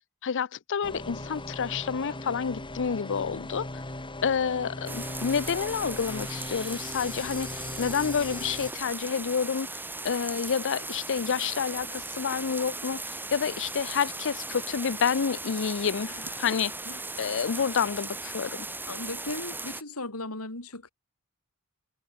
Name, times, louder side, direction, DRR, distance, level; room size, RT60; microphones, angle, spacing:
voice 1, 0.2-3.8 4.2-9.7 10.0-16.1 16.4-16.7 17.2-18.7, left 6 dB, 60° left, 0.6 m, -29 dB
sound 1, 0.8-8.7, left 2 dB, 25° left, 4.1 m, -39 dB
sound 2, 4.9-19.8, right 2 dB, 10° right, 2.9 m, -38 dB
voice 2, 16.0-16.6 16.9-17.6 18.9-20.9, left 2 dB, 85° left, 5.5 m, -38 dB
head